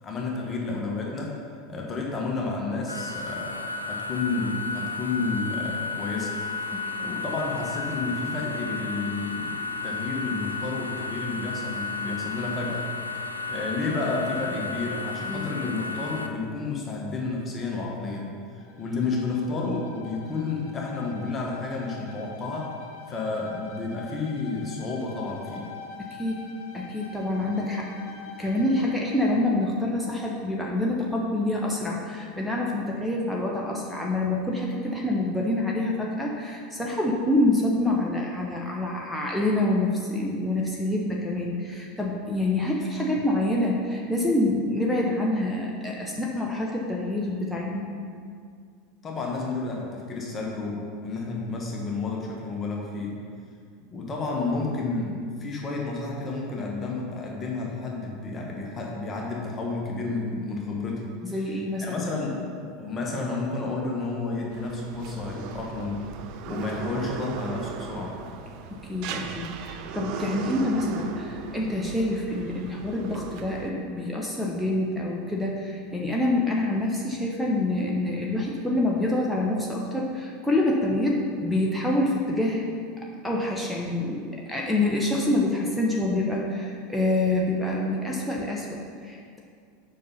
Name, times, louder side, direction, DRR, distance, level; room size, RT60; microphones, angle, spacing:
voice 1, 0.0-1.4 1.7-3.6 3.9-6.4 7.0-12.9 13.5-22.8 23.1-25.7 49.0-53.2 53.9-61.1 61.8-62.4 62.8-66.1 66.4-68.2, left 3 dB, 25° left, -2 dB, 1.4 m, -31 dB
sound 1, 2.9-16.3, left 4 dB, 90° left, 0.5 m, -33 dB
voice 2, 6.7-7.1 15.2-15.5 26.0-26.4 26.7-27.9 28.4-47.9 61.2-62.1 68.7-89.4, left 1 dB, 5° left, -3 dB, 1.0 m, -26 dB
Bowed string instrument, 18.5-29.0, left 5 dB, 55° left, 1.1 m, -45 dB
sound 2, 64.5-73.7, right 6 dB, 50° right, 0.5 m, -38 dB
7.6 x 5.5 x 5.6 m, 2.2 s
figure-of-eight pair, 80°, 0 cm